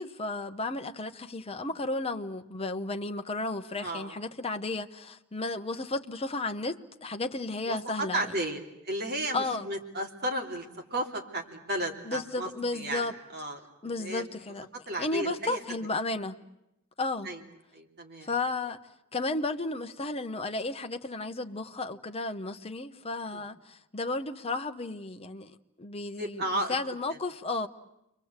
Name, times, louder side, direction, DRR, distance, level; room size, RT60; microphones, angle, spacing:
voice 1, 0.0-8.3 9.3-9.7 12.0-13.1 13.8-14.7 15.0-16.4 17.0-17.3 18.2-18.8 19.1-26.4 26.7-27.7, left 2 dB, 25° left, 1.0 m, -33 dB
voice 2, 3.8-4.2 7.7-13.1 13.3-13.6 14.0-14.3 14.9-15.6 17.2-17.4 17.7-18.3 23.3-23.4 26.2-26.7, right 1 dB, 50° right, 3.2 m, -34 dB
30.0 x 23.5 x 8.2 m
head